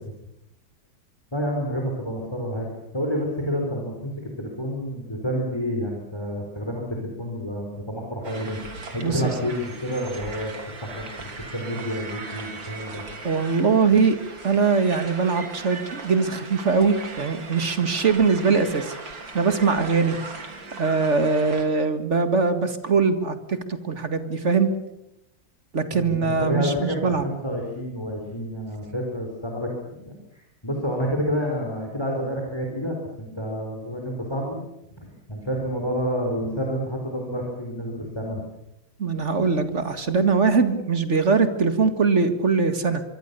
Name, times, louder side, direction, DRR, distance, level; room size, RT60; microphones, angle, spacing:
voice 1, 1.3-2.7 2.9-8.6 8.9-10.5 10.8-13.1 25.9-34.6 35.0-38.4, equal, 15° left, 0 dB, 4.3 m, -29 dB
sound 1, 8.2-21.6, right 3 dB, 75° right, 3.8 m, -39 dB
voice 2, 9.0-9.3 13.2-14.2 14.4-20.2 20.7-24.7 25.7-27.2 39.0-43.0, right 4 dB, 40° right, 9 dB, 2.0 m, -22 dB
24.0 x 24.0 x 6.9 m, 0.85 s
omnidirectional pair, 2.1 m